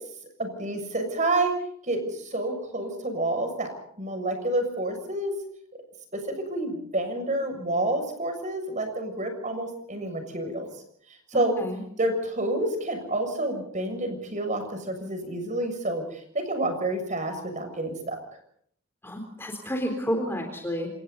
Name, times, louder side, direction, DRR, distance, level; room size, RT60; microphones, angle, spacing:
voice 1, 0.4-1.5 1.9-3.7 4.0-5.3 6.1-10.7 11.3-11.6 12.0-18.2, right 1 dB, 35° right, 7 dB, 6.9 m, -29 dB
voice 2, 11.3-11.8 19.0-20.9, equal, 10° left, 3 dB, 3.8 m, -30 dB
28.0 x 27.5 x 4.1 m, 0.64 s
head